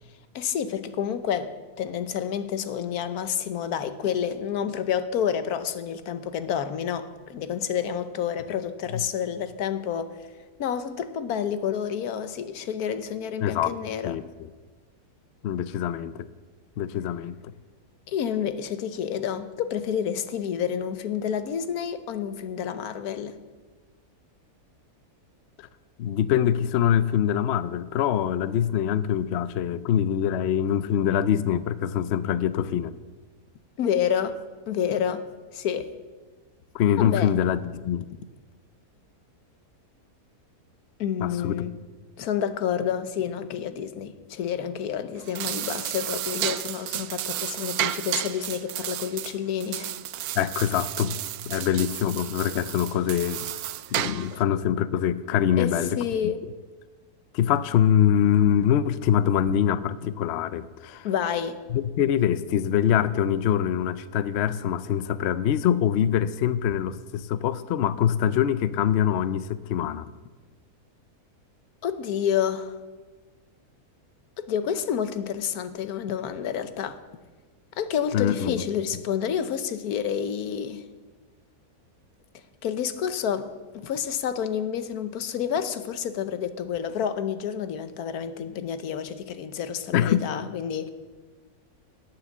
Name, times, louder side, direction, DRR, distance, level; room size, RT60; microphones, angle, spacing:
voice 1, 0.3-10.2 10.6-14.1 18.1-23.3 33.8-34.4 34.7-35.3 35.5-35.9 37.0-37.3 41.0-41.8 42.2-50.0 55.6-56.4 61.0-61.6 71.8-72.8 74.4-77.0 77.8-80.8 82.6-90.9, left 8 dB, 85° left, 1.3 m, -29 dB
voice 2, 13.4-13.7 14.0-14.2 15.4-16.3 16.8-17.5 25.6-25.7 26.0-32.9 36.7-38.1 41.2-41.6 50.4-51.2 51.4-53.5 53.9-56.3 57.3-61.1 61.7-70.1 78.1-78.6 89.9-90.3, left 9 dB, 65° left, 0.7 m, -24 dB
sound 1, 45.1-54.4, right 13 dB, 80° right, 1.1 m, -32 dB
11.5 x 8.8 x 7.3 m
omnidirectional pair, 1.6 m